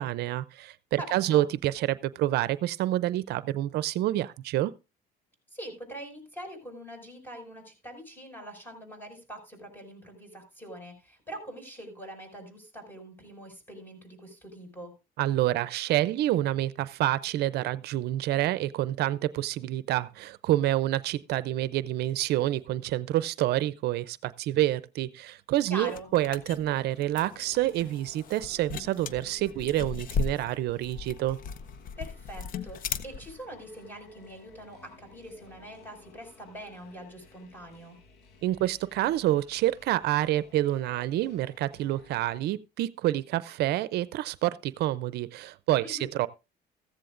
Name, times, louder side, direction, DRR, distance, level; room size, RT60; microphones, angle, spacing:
voice 1, 0.0-4.7 15.2-31.4 38.4-46.3, right 14 dB, 75° right, 0.5 m, -28 dB
voice 2, 1.0-1.5 5.5-14.9 25.7-26.1 32.0-38.0 45.8-46.1, right 1 dB, 10° left, 5.6 m, -43 dB
sound 1, 25.7-33.4, left 5 dB, 55° left, 0.7 m, -37 dB
sound 2, 26.1-42.4, left 4 dB, 80° left, 2.1 m, -56 dB
15.0 x 14.5 x 2.5 m
cardioid pair, 110°, 17 cm